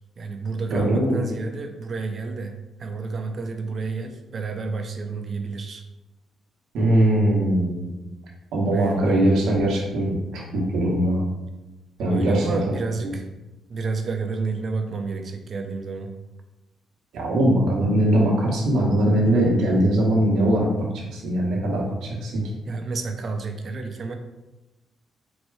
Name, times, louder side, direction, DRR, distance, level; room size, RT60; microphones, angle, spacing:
voice 1, 0.2-2.5 2.8-5.8 8.7-9.4 12.0-13.3 13.7-16.1 22.7-24.1, right 4 dB, 50° right, 5 dB, 0.6 m, -30 dB
voice 2, 0.7-1.2 6.7-8.0 8.5-11.2 12.0-12.6 17.1-20.7 20.9-22.4, right 1 dB, 80° right, -2 dB, 1.1 m, -21 dB
4.2 x 2.2 x 4.7 m, 1.0 s
cardioid pair, 70°, 0 cm